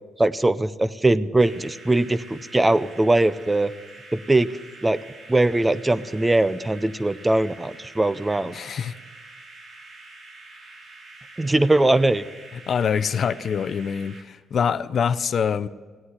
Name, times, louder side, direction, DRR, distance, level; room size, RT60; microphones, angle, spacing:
voice 1, 0.2-3.7 4.1-4.5 4.8-5.0 5.3-8.6 11.4-12.2, right 2 dB, 15° right, 15 dB, 0.5 m, -21 dB
sound 1, 1.4-14.2, right 2 dB, 55° right, 3.0 m, -46 dB
voice 2, 8.5-9.0 12.7-15.7, left 7 dB, 55° left, 14 dB, 0.5 m, -24 dB
16.0 x 8.8 x 9.7 m, 1.4 s
cardioid pair, 90°, 0 cm